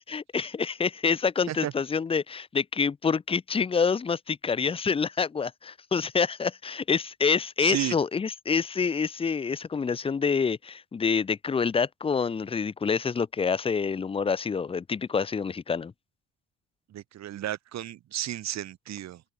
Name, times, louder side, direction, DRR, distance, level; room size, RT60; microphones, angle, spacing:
voice 1, 0.1-15.9, left 5 dB, 20° left, 0.4 m, -27 dB
voice 2, 7.6-8.0 16.9-19.2, right 12 dB, 60° right, 0.9 m, -33 dB
open air
cardioid pair, 90°, 30 cm